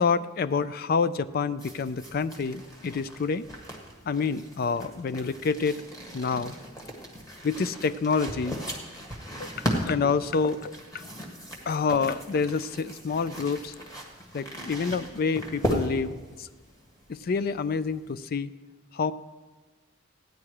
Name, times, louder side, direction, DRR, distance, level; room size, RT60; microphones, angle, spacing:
voice 1, 0.0-3.4 4.1-5.8 6.1-6.6 7.4-8.6 9.4-11.0 11.7-13.7 14.3-16.5 17.1-18.5 18.9-19.1, left 5 dB, 45° left, 16 dB, 0.3 m, -28 dB
sound 1, 1.6-18.1, equal, 15° left, 1.5 m, -37 dB
15.0 x 9.9 x 4.7 m, 1.3 s
head